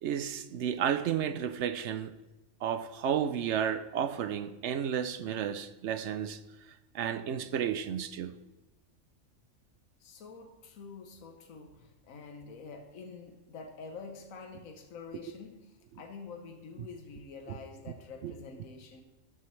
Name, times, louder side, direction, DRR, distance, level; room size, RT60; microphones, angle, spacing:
voice 1, 0.0-2.1 2.6-6.4 6.9-8.3 16.8-16.9 17.5-17.6 18.2-18.3, right 8 dB, 65° right, 0.8 m, -32 dB
voice 2, 10.0-19.0, left 4 dB, 85° left, 1.4 m, -47 dB
13.0 x 11.0 x 3.2 m
omnidirectional pair, 1.4 m